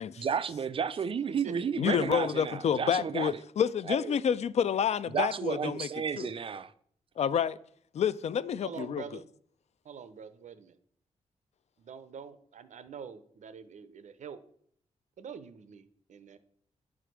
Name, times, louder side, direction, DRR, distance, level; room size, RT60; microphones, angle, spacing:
voice 1, 0.2-3.4 3.9-4.2 5.1-6.7, right 6 dB, 45° right, 0.5 m, -32 dB
voice 2, 1.8-5.9 6.2-6.3 7.2-7.6 7.9-9.0, left 8 dB, 60° left, 0.4 m, -29 dB
voice 3, 8.6-9.3 9.8-10.8 11.8-14.4 15.2-16.4, right 6 dB, 75° right, 0.8 m, -45 dB
9.9 x 5.0 x 6.1 m
wide cardioid pair, 125°, 13 cm